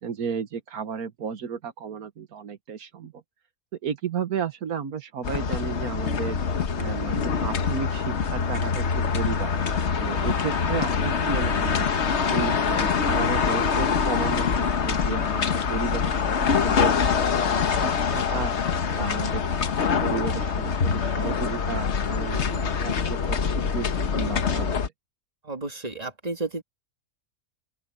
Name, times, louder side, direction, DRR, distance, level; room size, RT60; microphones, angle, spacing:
voice 1, 0.0-3.1 3.8-6.4 6.8-9.5 10.0-11.9 12.3-16.9 17.4-19.4 20.0-23.9 24.1-24.8, right 6 dB, 85° right, 1.7 m, -33 dB
sound 1, 5.2-24.9, left 6 dB, 50° left, 1.3 m, -24 dB
voice 2, 25.4-26.6, right 3 dB, 25° right, 2.8 m, -32 dB
open air
omnidirectional pair, 1.5 m